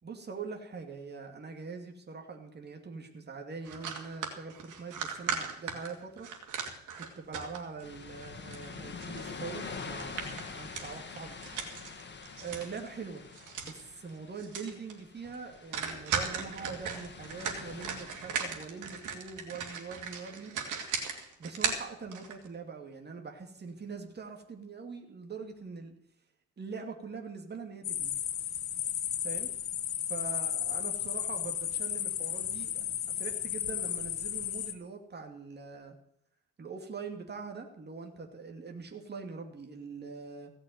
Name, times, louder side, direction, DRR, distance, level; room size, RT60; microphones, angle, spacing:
voice 1, 0.0-6.3 7.2-11.4 12.4-13.2 13.6-20.5 21.4-25.9 26.6-28.1 29.2-29.5 30.1-32.8 33.2-36.0 36.6-40.5, right 5 dB, 35° right, 3 dB, 2.5 m, -43 dB
sound 1, 3.7-7.8 8.2-12.9 13.2-13.8 14.1-14.2 14.4-14.9 15.2-15.4 15.7-22.5, right 6 dB, 85° right, 2.4 m, -37 dB
sound 2, 7.8-19.0, left 5 dB, 35° left, 2.3 m, -45 dB
sound 3, 27.8-34.7, left 10 dB, 65° left, 1.3 m, -34 dB
16.5 x 6.3 x 9.4 m, 0.77 s
cardioid pair, 90°, 30 cm